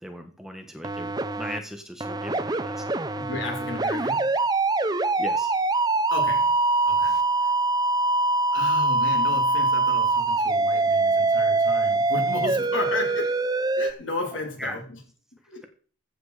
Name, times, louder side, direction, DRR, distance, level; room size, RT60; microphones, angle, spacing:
voice 1, 0.0-3.0 5.2-5.5 7.0-7.2 14.6-14.8, equal, ahead, 1.3 m, -38 dB
sound 1, 0.8-1.6 2.0-13.9, right 3 dB, 20° right, 0.7 m, -23 dB
voice 2, 3.2-4.3 6.1-6.6 6.9-7.5 8.5-13.5 13.8-15.0 15.5-15.7, left 2 dB, 70° left, 3.3 m, -33 dB
14.5 x 7.8 x 4.9 m
head